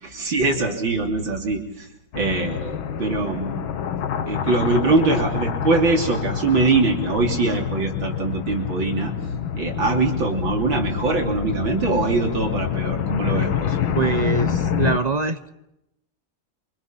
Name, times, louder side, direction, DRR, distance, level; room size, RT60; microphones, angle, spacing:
voice 1, 0.0-1.9 2.1-3.7 4.3-9.1 9.6-13.8, right 3 dB, 80° right, 2 dB, 3.9 m, -22 dB
sound 1, 2.1-15.0, left 8 dB, 85° left, 2.0 m, -27 dB
voice 2, 13.9-15.5, right 4 dB, 30° right, 9 dB, 0.8 m, -23 dB
28.0 x 25.0 x 5.9 m, 0.84 s
omnidirectional pair, 2.1 m